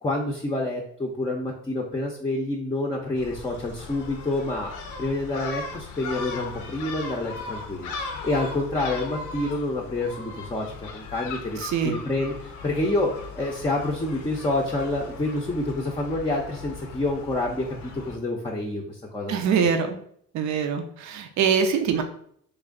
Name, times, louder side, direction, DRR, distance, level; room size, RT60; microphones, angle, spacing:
voice 1, 0.0-4.7 5.0-7.9 8.2-10.7 10.9-19.7, left 2 dB, 15° left, -1 dB, 0.6 m, -28 dB
Gull seagull, 3.2-18.2, left 4 dB, 90° left, 0.6 m, -38 dB
voice 2, 11.6-12.0 19.3-20.0 20.3-22.0, right 6 dB, 70° right, 6 dB, 0.6 m, -24 dB
3.2 x 2.5 x 3.7 m, 0.65 s
cardioid pair, 90°, 30 cm